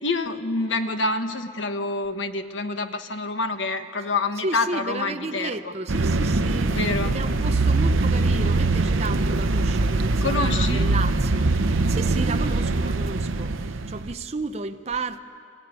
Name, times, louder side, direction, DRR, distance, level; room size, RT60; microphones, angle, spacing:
voice 1, 0.0-5.7 6.7-7.1 10.2-10.9, left 3 dB, 70° left, 8 dB, 1.3 m, -27 dB
voice 2, 4.4-15.2, right 3 dB, 35° right, 7 dB, 0.6 m, -33 dB
sound 1, 5.9-14.1, right 2 dB, 85° right, 0.8 m, -22 dB
26.5 x 15.5 x 9.6 m, 2.4 s
head